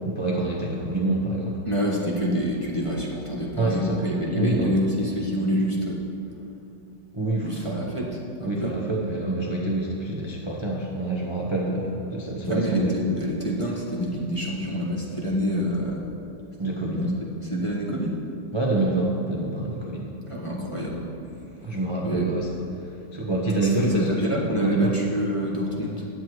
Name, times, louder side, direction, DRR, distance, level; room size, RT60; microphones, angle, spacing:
voice 1, 0.0-1.6 3.5-4.9 7.1-8.1 8.4-12.9 16.6-17.1 18.5-20.1 21.6-22.5 22.8-24.2 24.6-24.9, right 2 dB, 20° right, -3 dB, 0.7 m, -26 dB
voice 2, 1.6-6.0 7.4-8.1 8.4-8.7 12.4-16.0 16.9-17.1 17.4-18.2 20.3-21.1 22.0-22.3 23.8-26.1, equal, 20° left, -4 dB, 1.3 m, -27 dB
16.0 x 10.0 x 3.1 m, 2.7 s
omnidirectional pair, 2.0 m